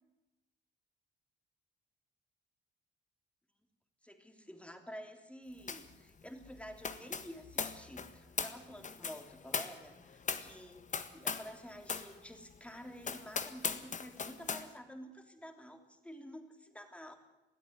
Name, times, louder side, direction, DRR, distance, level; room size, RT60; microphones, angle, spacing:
voice 1, 4.0-17.2, equal, 5° left, 6 dB, 3.2 m, -50 dB
sound 1, 5.7-6.0 6.2-11.6 11.8-12.1 12.5-12.6 13.0-14.7, left 5 dB, 40° left, 1.6 m, -39 dB
21.0 x 13.5 x 10.0 m, 1.0 s
cardioid pair, 90°, 20 cm